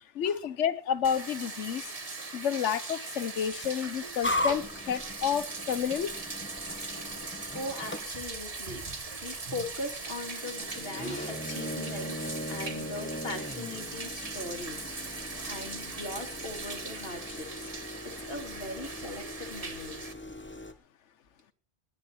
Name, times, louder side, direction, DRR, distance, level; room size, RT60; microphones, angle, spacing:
voice 1, 0.1-1.9 2.3-6.1, left 8 dB, 85° left, 1.2 m, -30 dB
Bathtub (filling or washing), 1.0-20.1, right 3 dB, 30° right, 1.3 m, -40 dB
sound 1, 4.2-20.7, left 1 dB, 10° left, 1.2 m, -39 dB
voice 2, 7.5-8.9 9.2-17.7 18.0-20.0, left 2 dB, 55° left, 2.5 m, -40 dB
21.0 x 9.9 x 4.4 m
omnidirectional pair, 1.2 m